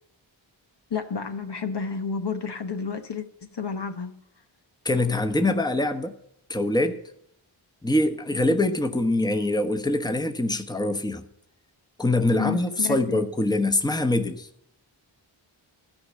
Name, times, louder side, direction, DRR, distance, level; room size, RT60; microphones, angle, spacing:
voice 1, 0.9-3.3 3.5-4.1 12.3-13.2, left 6 dB, 55° left, 1.1 m, -30 dB
voice 2, 4.8-6.1 6.5-7.0 7.8-11.2 12.0-14.5, left 2 dB, 10° left, 1.1 m, -24 dB
13.0 x 5.2 x 8.4 m
cardioid pair, 40°, 49 cm